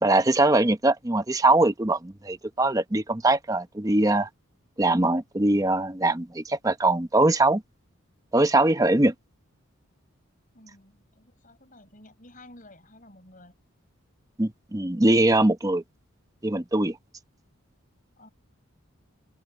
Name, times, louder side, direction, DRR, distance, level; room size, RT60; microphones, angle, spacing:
voice 1, 0.0-4.3 4.8-7.6 8.3-9.1 14.4-15.8 16.4-17.0, right 2 dB, 15° right, 0.8 m, -22 dB
voice 2, 10.5-13.5 18.2-18.3, left 1 dB, 40° left, 6.0 m, -52 dB
open air
head